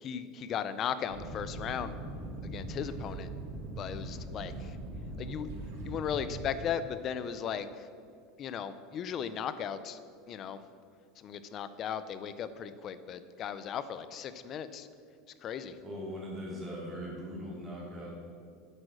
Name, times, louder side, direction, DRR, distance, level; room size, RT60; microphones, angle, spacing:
voice 1, 0.0-1.9 2.4-3.3 3.8-4.8 5.2-5.5 5.8-7.9 8.4-10.0 10.3-10.6 11.2-14.9 15.4-15.8, left 8 dB, 30° left, 13 dB, 0.6 m, -37 dB
sound 1, 1.1-6.5, right 2 dB, 85° right, 3.0 m, -41 dB
voice 2, 15.8-18.1, equal, 15° right, -5 dB, 3.2 m, -40 dB
9.5 x 8.4 x 6.4 m, 2.3 s
supercardioid pair, 165°, 0 cm